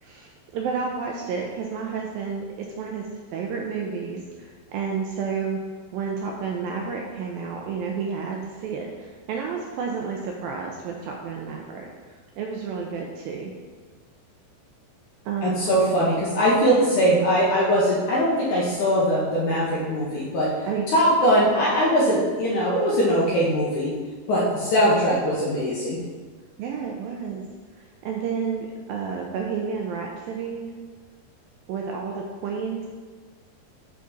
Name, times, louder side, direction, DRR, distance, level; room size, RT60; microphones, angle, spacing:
voice 1, 0.0-5.6 5.9-13.5 15.3-15.6 20.7-20.8 21.4-21.5 26.6-27.4 27.8-30.7 31.7-32.9, right 5 dB, 85° right, 0 dB, 2.1 m, -31 dB
voice 2, 15.4-20.6 20.9-23.9 24.3-26.0, equal, 70° left, -5 dB, 2.0 m, -21 dB
6.8 x 5.2 x 5.2 m, 1.4 s
omnidirectional pair, 4.7 m